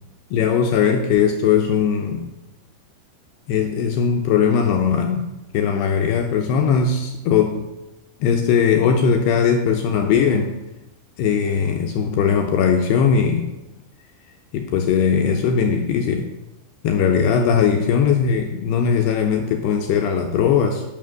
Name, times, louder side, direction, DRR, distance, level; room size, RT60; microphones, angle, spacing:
voice 1, 0.3-2.3 3.5-7.6 8.2-10.5 11.2-13.4 14.5-16.3 16.8-20.8, left 7 dB, 80° left, 4 dB, 2.4 m, -19 dB
12.5 x 5.9 x 7.8 m, 0.97 s
omnidirectional pair, 5.8 m